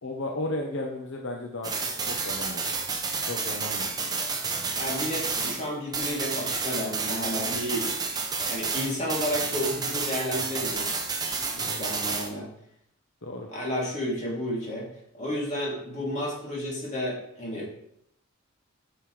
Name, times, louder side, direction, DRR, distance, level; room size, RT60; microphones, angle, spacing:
voice 1, 0.0-1.7 2.1-2.6 3.3-3.9 11.6-11.8 13.2-13.5, left 1 dB, 60° left, 1 dB, 0.8 m, -34 dB
sound 1, 1.6-5.7 5.9-12.3, right 4 dB, 20° right, 0.8 m, -30 dB
voice 2, 4.8-7.9 8.5-12.5 13.5-14.9 15.1-17.7, equal, 30° left, -4 dB, 2.9 m, -32 dB
9.3 x 6.7 x 3.3 m, 0.73 s
head